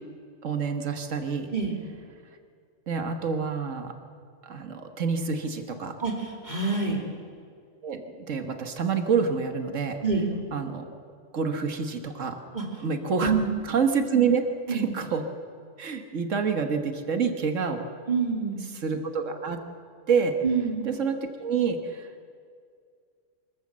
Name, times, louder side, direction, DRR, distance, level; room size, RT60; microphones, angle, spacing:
voice 1, 0.4-1.5 2.9-3.9 4.4-5.9 7.8-10.0 10.5-10.9 11.3-12.4 12.8-13.3 13.6-15.2 15.8-17.8 18.8-19.6 20.1-20.3 20.8-22.3, right 5 dB, 90° right, 6 dB, 1.7 m, -27 dB
voice 2, 6.0-7.0 10.0-10.3 12.5-12.7 13.2-13.5 14.7-14.9 18.1-18.6 20.4-20.8, right 4 dB, 35° right, 0 dB, 2.7 m, -26 dB
24.0 x 14.5 x 7.5 m, 2.1 s
omnidirectional pair, 1.3 m